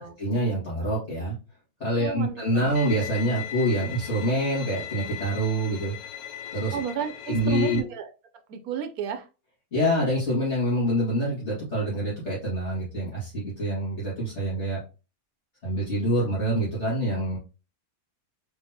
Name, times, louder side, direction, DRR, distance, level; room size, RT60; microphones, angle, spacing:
voice 1, 0.2-1.3 1.8-5.9 6.5-6.8 7.3-7.8 9.7-14.8 15.6-17.4, right 1 dB, 50° left, -8 dB, 2.3 m, -26 dB
voice 2, 2.0-2.7 6.7-8.1 8.5-9.3, right 8 dB, 80° right, 8 dB, 1.1 m, -32 dB
Bowed string instrument, 2.8-7.8, left 9 dB, 85° left, 1.2 m, -38 dB
4.3 x 3.7 x 2.7 m, 0.31 s
omnidirectional pair, 1.6 m